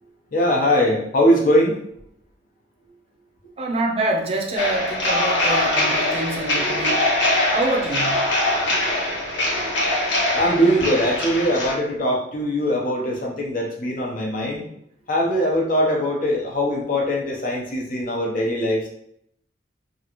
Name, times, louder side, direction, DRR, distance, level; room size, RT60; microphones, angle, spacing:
voice 1, 0.3-1.8 10.3-14.6 15.1-18.9, equal, 45° left, -1 dB, 0.7 m, -21 dB
voice 2, 3.6-7.1 7.5-8.2, right 2 dB, 35° right, 1 dB, 0.5 m, -25 dB
sound 1, 4.6-11.7, left 1 dB, 75° left, 0.8 m, -22 dB
3.0 x 2.4 x 2.9 m, 0.71 s
head